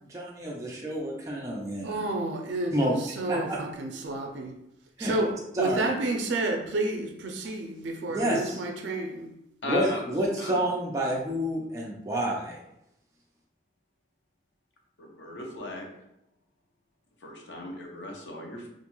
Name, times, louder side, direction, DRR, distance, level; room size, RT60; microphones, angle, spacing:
voice 1, 0.1-2.0 2.7-3.0 3.3-3.6 5.0-5.1 5.6-5.9 8.1-8.6 9.6-12.6, right 1 dB, 20° right, 0.4 m, -29 dB
voice 2, 1.8-4.5 5.0-9.3, right 2 dB, 90° right, 0.4 m, -30 dB
voice 3, 9.6-10.0 10.4-10.6 15.0-15.9 17.2-18.7, left 1 dB, 80° left, 0.6 m, -36 dB
2.5 x 2.2 x 2.9 m
head